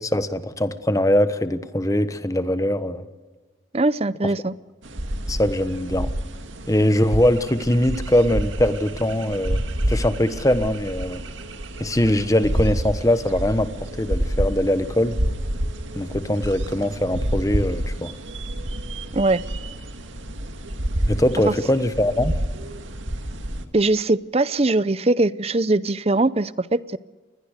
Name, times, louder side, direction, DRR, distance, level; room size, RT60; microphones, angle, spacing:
voice 1, 0.0-3.0 5.3-6.1 6.7-9.6 9.9-11.2 11.8-15.2 16.0-18.1 21.1-22.3, left 1 dB, 15° left, 11 dB, 1.2 m, -21 dB
voice 2, 3.7-4.5 19.1-19.4 21.5-21.6 23.7-27.0, right 2 dB, 30° right, 17 dB, 0.6 m, -21 dB
sound 1, 4.8-23.6, right 1 dB, 90° right, 2.2 m, -29 dB
27.5 x 20.5 x 6.7 m, 1.3 s
head